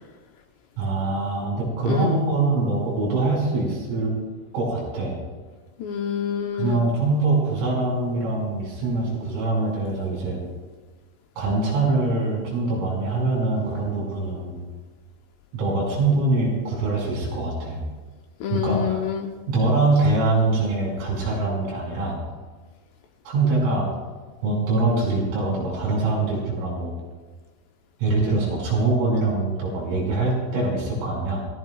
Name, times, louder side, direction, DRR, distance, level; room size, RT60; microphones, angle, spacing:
voice 1, 0.8-4.2 4.5-5.2 6.5-10.4 11.4-14.6 15.5-17.8 18.5-19.0 19.5-22.2 23.3-23.9 24.4-27.0 28.0-31.4, right 3 dB, 85° right, -3 dB, 8.0 m, -23 dB
voice 2, 1.9-2.2 5.8-6.8 18.4-19.3, left 8 dB, 75° left, 3 dB, 2.7 m, -27 dB
28.5 x 16.5 x 2.4 m, 1.4 s
omnidirectional pair, 5.7 m